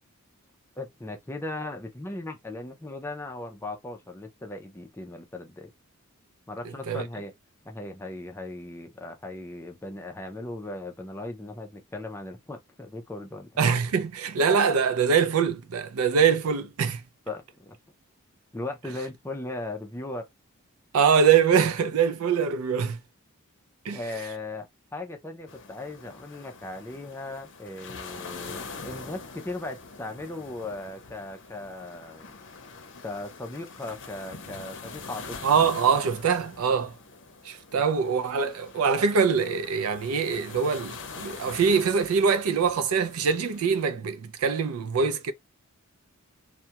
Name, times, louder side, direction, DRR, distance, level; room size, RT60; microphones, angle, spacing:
voice 1, 0.8-5.7 6.5-7.3 7.6-13.5 17.3-17.8 18.5-20.2 23.9-32.3 33.0-35.5 37.7-37.8, left 2 dB, 10° left, 0.4 m, -38 dB
voice 2, 13.6-17.0 20.9-23.0 23.9-24.0 35.4-36.9 37.5-45.3, right 6 dB, 70° right, 0.4 m, -23 dB
sound 1, 25.5-43.9, left 4 dB, 55° left, 0.6 m, -44 dB
2.3 x 2.1 x 2.8 m
head